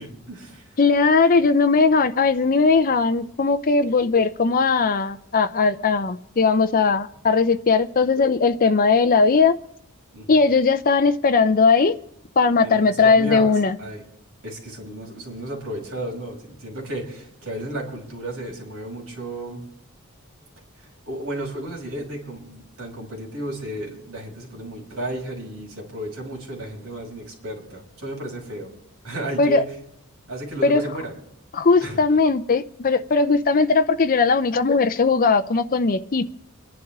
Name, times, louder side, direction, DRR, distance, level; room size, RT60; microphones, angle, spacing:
voice 1, 0.0-0.8 10.1-10.4 12.6-13.5 13.8-14.0 14.4-19.6 20.8-28.7 29.0-29.7 30.3-31.1 31.8-32.0, right 1 dB, 65° right, -2 dB, 5.7 m, -33 dB
voice 2, 0.8-9.6 10.3-12.0 12.4-13.8 29.4-29.6 30.6-30.8 31.5-36.2, left 4 dB, 40° left, 8 dB, 0.5 m, -18 dB
28.0 x 11.0 x 3.6 m, 0.78 s
head